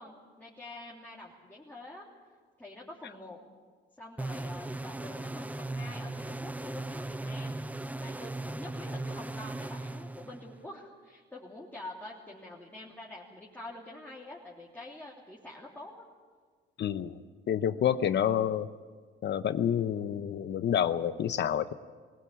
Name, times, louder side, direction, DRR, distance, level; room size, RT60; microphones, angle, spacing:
voice 1, 0.0-2.0 2.6-3.4 4.0-7.6 7.9-16.0, left 1 dB, 10° left, -5 dB, 3.2 m, -46 dB
sound 1, 4.2-10.7, right 2 dB, 5° right, 0.7 m, -38 dB
voice 2, 16.8-17.2 17.5-18.7 19.2-21.7, left 9 dB, 60° left, 12 dB, 0.9 m, -28 dB
19.5 x 18.0 x 8.6 m, 1.5 s
cardioid pair, 90°, 20 cm